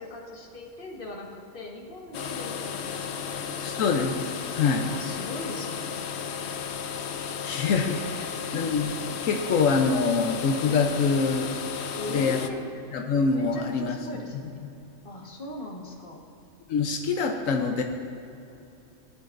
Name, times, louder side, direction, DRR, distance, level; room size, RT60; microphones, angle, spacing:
voice 1, 0.0-3.8 4.8-5.9 12.0-12.6 13.3-14.5 15.0-16.2, left 1 dB, 45° left, -1 dB, 1.6 m, -39 dB
sound 1, 2.1-12.5, left 7 dB, 65° left, 0.8 m, -34 dB
voice 2, 3.6-4.9 7.4-11.5 12.1-12.4 12.9-14.0 16.7-17.8, left 5 dB, 85° left, 3 dB, 1.1 m, -25 dB
19.5 x 11.0 x 2.6 m, 2.7 s
omnidirectional pair, 1.3 m